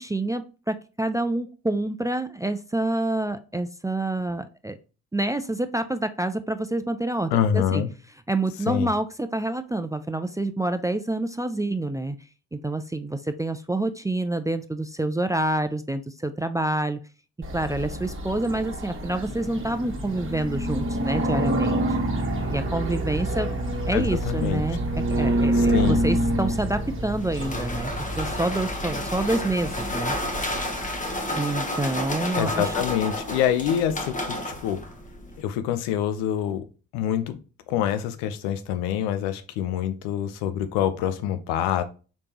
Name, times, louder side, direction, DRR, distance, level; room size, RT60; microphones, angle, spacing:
voice 1, 0.0-4.8 5.1-7.8 8.3-12.2 12.5-17.0 17.5-21.8 22.5-23.5 23.9-30.2 31.4-32.7, right 2 dB, 10° right, 10 dB, 0.4 m, -27 dB
voice 2, 7.3-7.9 8.7-8.9 23.9-24.6 25.5-26.0 32.3-34.8 35.4-36.6 36.9-37.4 37.7-41.8, left 10 dB, 75° left, 10 dB, 0.7 m, -26 dB
sound 1, 17.4-31.2, right 1 dB, 30° right, 1.3 m, -27 dB
sound 2, 26.7-35.4, left 1 dB, 20° left, 1.1 m, -31 dB
5.1 x 3.4 x 2.9 m, 0.34 s
hypercardioid pair, 50°, 40 cm